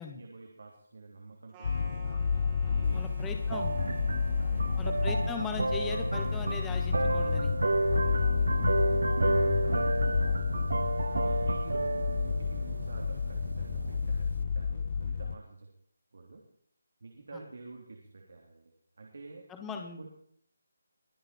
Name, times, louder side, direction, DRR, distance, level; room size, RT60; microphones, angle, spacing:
voice 1, 0.0-2.1 2.7-3.5 4.4-4.8 7.8-10.5 11.1-15.7 16.1-16.4 17.0-19.5 20.0-20.1, right 3 dB, 55° right, 0 dB, 3.2 m, -49 dB
sound 1, 1.5-7.5, right 2 dB, 15° right, 2.9 m, -52 dB
sound 2, 1.6-15.4, left 5 dB, 30° left, 0.5 m, -30 dB
sound 3, 2.8-14.4, right 2 dB, 90° right, 0.5 m, -32 dB
voice 2, 2.9-3.8 4.8-7.5 19.5-20.1, left 5 dB, 5° left, 4 dB, 1.0 m, -39 dB
23.0 x 7.8 x 4.4 m, 0.63 s
hypercardioid pair, 180°, 0 cm